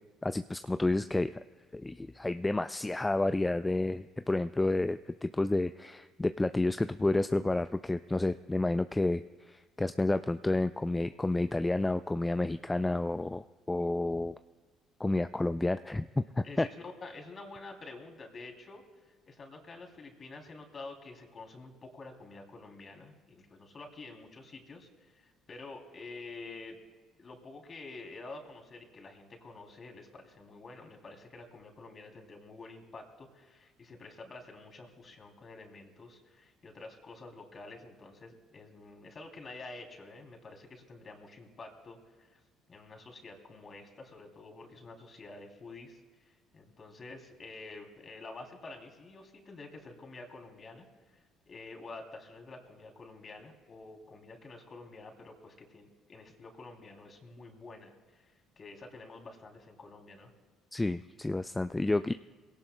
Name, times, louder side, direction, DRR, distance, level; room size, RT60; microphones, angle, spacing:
voice 1, 0.2-1.4 1.7-14.3 15.0-16.7 60.7-62.1, left 2 dB, 15° left, 11 dB, 0.3 m, -30 dB
voice 2, 17.0-26.8 27.2-42.4 42.7-60.3, left 3 dB, 40° left, 2 dB, 2.9 m, -49 dB
22.5 x 17.5 x 2.2 m, 1.4 s
hypercardioid pair, 60°, 0 cm